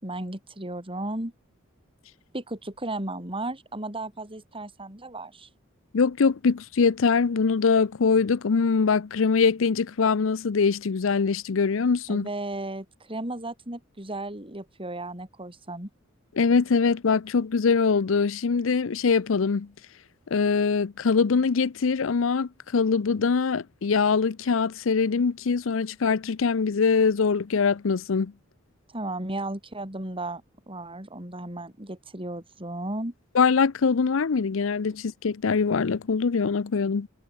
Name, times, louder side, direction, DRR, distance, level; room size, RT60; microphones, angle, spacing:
voice 1, 0.0-1.3 2.3-5.5 12.1-15.9 28.9-30.4 30.7-33.1, right 2 dB, 25° right, 5.9 m, -34 dB
voice 2, 5.9-12.3 16.4-19.7 20.3-28.3 33.3-37.1, left 5 dB, 70° left, 0.6 m, -23 dB
head